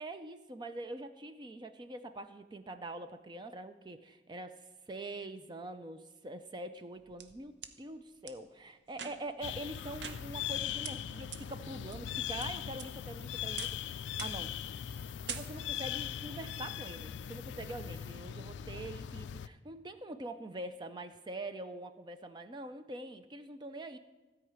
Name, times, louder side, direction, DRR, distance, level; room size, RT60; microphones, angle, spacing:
voice 1, 0.0-4.6 4.9-14.5 15.3-24.0, right 2 dB, 25° right, 9 dB, 0.4 m, -44 dB
sound 1, 6.8-7.7 8.3-8.4 8.9-9.4 10.0-10.6 10.8-10.9 11.3-11.4 11.9-12.5 12.8-13.2 13.6-13.8 14.2-14.5 14.8-15.0 15.3-15.8, right 8 dB, 80° right, 0.6 m, -44 dB
sound 2, 9.4-19.5, left 10 dB, 85° left, 0.3 m, -40 dB
13.0 x 4.7 x 8.7 m, 1.2 s
head